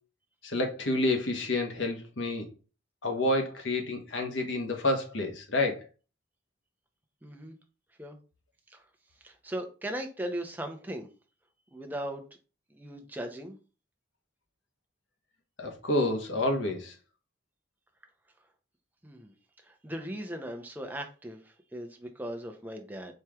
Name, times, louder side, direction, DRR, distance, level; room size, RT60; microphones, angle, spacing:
voice 1, 0.4-2.5 3.0-5.8 15.6-16.9, left 2 dB, 85° left, 1.2 m, -29 dB
voice 2, 7.2-7.6 8.0-8.2 8.7-8.8 9.2-11.1 11.7-12.2 12.7-13.6 19.0-19.3 19.6-23.1, right 1 dB, 10° right, 0.7 m, -38 dB
4.4 x 3.2 x 3.5 m
head